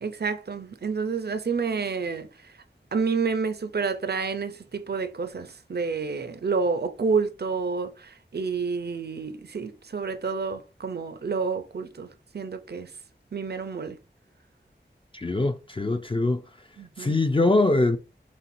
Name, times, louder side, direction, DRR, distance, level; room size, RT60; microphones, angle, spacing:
voice 1, 0.0-2.6 2.9-12.1 12.3-12.9 13.3-14.0 16.8-17.2, right 5 dB, 60° right, 0.5 m, -29 dB
voice 2, 15.1-16.4 17.0-18.0, left 2 dB, 25° left, 0.4 m, -23 dB
4.2 x 3.6 x 2.6 m
wide cardioid pair, 40°, 19 cm